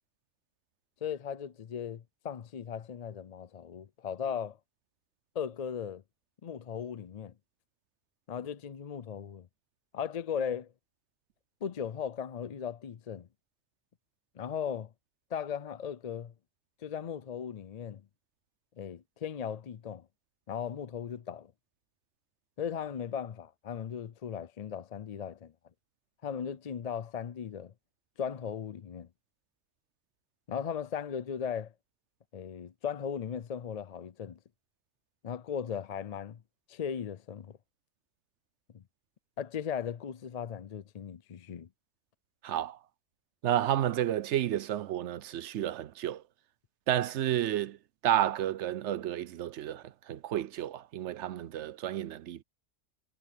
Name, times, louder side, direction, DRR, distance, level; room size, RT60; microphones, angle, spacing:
voice 1, 1.0-4.6 5.3-6.0 6.4-7.3 8.3-9.5 9.9-10.7 11.6-13.3 14.4-14.9 15.3-16.3 16.8-18.0 18.8-20.1 20.5-21.5 22.6-25.5 26.2-27.7 28.2-29.1 30.5-31.7 32.3-34.4 35.2-36.4 36.7-37.6 38.7-38.8 39.4-41.7, left 7 dB, 50° left, 0.5 m, -37 dB
voice 2, 42.4-42.8 43.4-46.2 46.9-47.8 48.0-52.4, right 11 dB, 70° right, 0.9 m, -31 dB
omnidirectional pair, 1.2 m